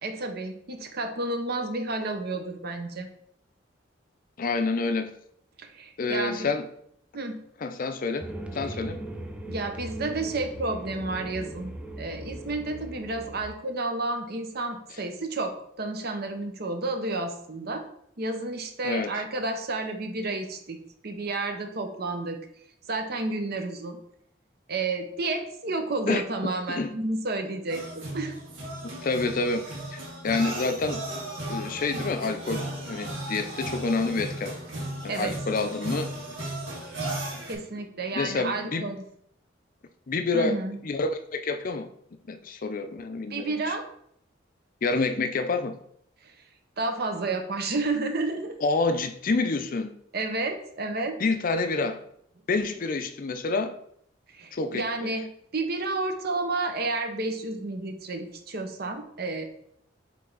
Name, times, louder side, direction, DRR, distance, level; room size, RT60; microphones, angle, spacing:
voice 1, 0.0-3.1 5.6-6.5 7.1-7.4 8.6-8.7 9.5-17.8 18.2-20.8 21.0-22.4 22.9-24.0 24.7-28.3 35.1-35.3 37.5-39.0 40.3-40.8 43.3-43.9 46.2-46.3 46.8-48.7 50.1-51.2 54.3-59.5, right 2 dB, 55° right, 0.9 m, -31 dB
voice 2, 4.4-5.1 6.0-6.7 7.6-8.3 8.5-9.0 18.8-19.1 26.1-26.9 29.0-29.7 29.9-31.0 31.5-34.5 35.0-36.1 38.1-38.9 40.1-40.6 40.8-41.9 42.3-43.7 44.8-45.8 48.6-49.9 51.2-52.0 52.5-53.7 54.5-55.1, left 3 dB, 45° left, 0.5 m, -28 dB
sound 1, 8.2-13.5, right 1 dB, 5° right, 0.6 m, -39 dB
sound 2, 27.7-37.5, right 1 dB, 75° right, 2.1 m, -35 dB
7.5 x 3.4 x 4.0 m
head